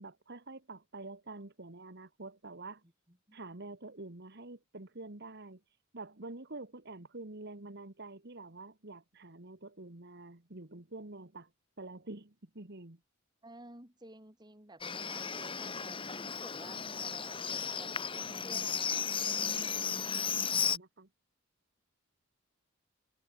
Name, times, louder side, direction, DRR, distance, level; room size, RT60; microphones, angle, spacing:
voice 1, 0.0-2.8 3.3-5.6 5.9-11.5 11.8-13.0 19.5-21.1, right 2 dB, 50° right, 1.9 m, -47 dB
voice 2, 3.1-3.4 13.4-19.1, right 2 dB, 20° right, 4.6 m, -53 dB
Livestock farm animals working animals, 14.8-20.8, left 7 dB, 25° left, 1.5 m, -35 dB
head